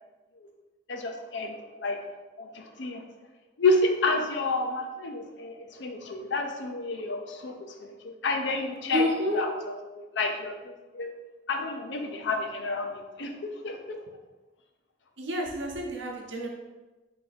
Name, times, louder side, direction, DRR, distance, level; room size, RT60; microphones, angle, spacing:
voice 1, 0.9-2.0 2.4-3.0 3.6-7.5 7.8-7.9 8.2-9.0 9.3-11.1 11.5-14.0, left 2 dB, 80° left, 4 dB, 0.6 m, -30 dB
voice 2, 8.9-9.4 15.2-16.5, equal, 90° right, 0 dB, 0.8 m, -29 dB
4.2 x 2.5 x 4.1 m, 1.2 s
head